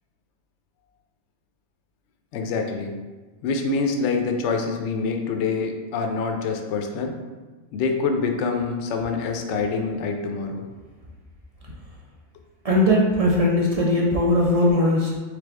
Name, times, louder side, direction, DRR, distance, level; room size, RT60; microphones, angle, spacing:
voice 1, 2.3-3.0 3.4-7.2 7.7-10.6, left 4 dB, 70° left, 4 dB, 0.8 m, -26 dB
voice 2, 12.6-15.2, left 1 dB, 55° right, -3 dB, 0.4 m, -19 dB
3.6 x 3.5 x 3.3 m, 1.3 s
omnidirectional pair, 1.3 m